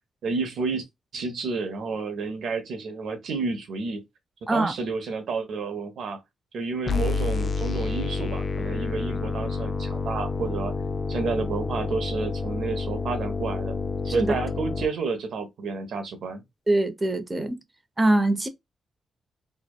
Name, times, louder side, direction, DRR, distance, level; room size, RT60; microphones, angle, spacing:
voice 1, 0.2-0.8 1.1-4.0 4.5-6.2 6.5-10.7 11.1-13.8 14.0-16.4, right 4 dB, 75° right, 0.6 m, -30 dB
sound 1, 6.9-14.9, left 4 dB, 55° left, 0.3 m, -29 dB
voice 2, 16.7-17.6 18.0-18.5, right 2 dB, 25° right, 0.5 m, -23 dB
2.7 x 2.0 x 2.2 m
supercardioid pair, 55°, 0 cm